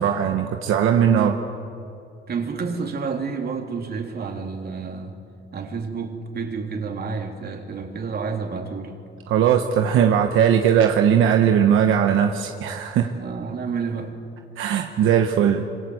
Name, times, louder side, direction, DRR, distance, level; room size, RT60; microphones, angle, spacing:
voice 1, 0.0-1.3 9.3-13.1 14.6-15.7, right 8 dB, 85° right, 4 dB, 1.4 m, -19 dB
voice 2, 1.0-1.4 2.3-5.2 5.5-9.0 13.1-14.3, right 5 dB, 50° right, 3 dB, 3.5 m, -29 dB
26.5 x 25.5 x 8.0 m, 2.6 s
cardioid pair, 90°, 20 cm